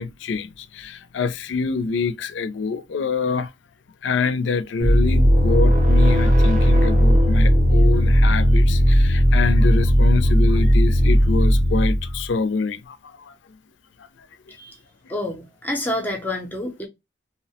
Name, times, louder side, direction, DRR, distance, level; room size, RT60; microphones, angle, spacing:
voice 1, 0.0-3.5 4.0-13.0 13.3-13.4, left 4 dB, 75° left, 0.4 m, -26 dB
sound 1, 4.8-12.2, equal, 40° right, 0.5 m, -16 dB
voice 2, 15.1-16.9, left 1 dB, 10° left, 0.5 m, -28 dB
2.7 x 2.1 x 2.7 m
head